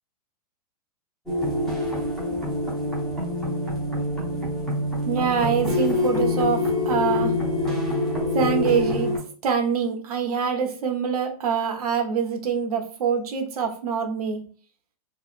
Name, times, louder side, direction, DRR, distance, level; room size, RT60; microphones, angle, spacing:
sound 1, 1.3-9.2, left 2 dB, ahead, 0.7 m, -25 dB
voice 1, 5.1-7.3 8.3-9.2 9.4-14.4, right 6 dB, 70° right, 5 dB, 0.8 m, -25 dB
2.8 x 2.8 x 2.4 m, 0.40 s
hypercardioid pair, 165°, 20 cm